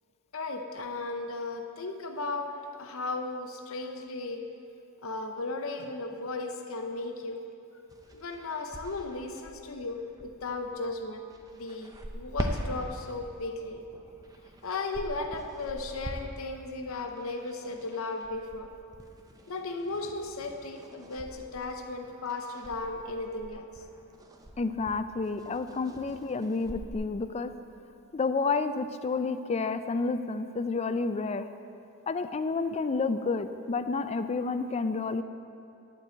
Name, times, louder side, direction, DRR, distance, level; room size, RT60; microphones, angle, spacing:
voice 1, 0.3-4.4 5.0-7.4 8.1-11.3 11.5-13.8 14.6-18.7 19.5-23.7 25.5-25.6, left 3 dB, 65° left, 4 dB, 0.7 m, -36 dB
sound 1, 7.9-26.9, right 1 dB, 15° right, 0.6 m, -43 dB
voice 2, 24.6-27.5 28.1-31.5 32.1-35.2, left 4 dB, 30° left, 10 dB, 0.3 m, -30 dB
11.5 x 4.6 x 7.8 m, 2.6 s
head